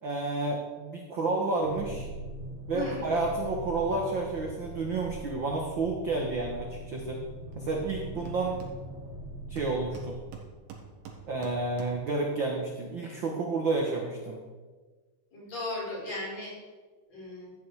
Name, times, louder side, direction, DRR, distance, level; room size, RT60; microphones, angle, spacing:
voice 1, 0.0-2.1 2.7-7.2 7.5-8.6 9.5-10.2 11.3-14.4, right 3 dB, 60° right, 0 dB, 1.2 m, -30 dB
sound 1, 1.6-10.2, right 1 dB, 75° left, 4.2 m, -41 dB
voice 2, 2.7-3.1 15.3-16.5 17.1-17.5, left 2 dB, 50° left, -6 dB, 5.8 m, -36 dB
Hammer, 7.5-7.6 7.9-9.2 9.6-12.2, right 6 dB, 85° right, 3.2 m, -46 dB
13.0 x 8.8 x 4.8 m, 1.4 s
omnidirectional pair, 4.0 m